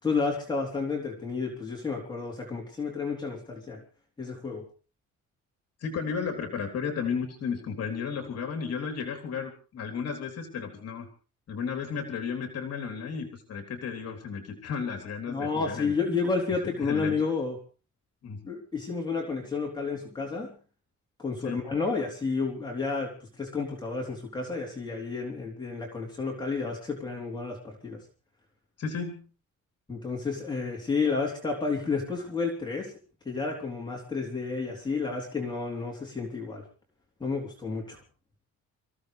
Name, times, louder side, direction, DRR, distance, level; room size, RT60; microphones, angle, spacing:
voice 1, 0.0-3.8 4.2-4.6 15.3-17.6 18.4-20.5 21.2-28.0 29.9-32.9 33.3-36.6 37.2-38.0, left 4 dB, 15° left, -1 dB, 3.5 m, -31 dB
voice 2, 5.8-11.1 11.5-15.9 16.6-17.2 18.2-18.4 21.4-21.6 28.8-29.3, left 6 dB, 55° left, 5 dB, 3.5 m, -33 dB
26.0 x 15.5 x 3.4 m, 0.35 s
cardioid pair, 175°, 31 cm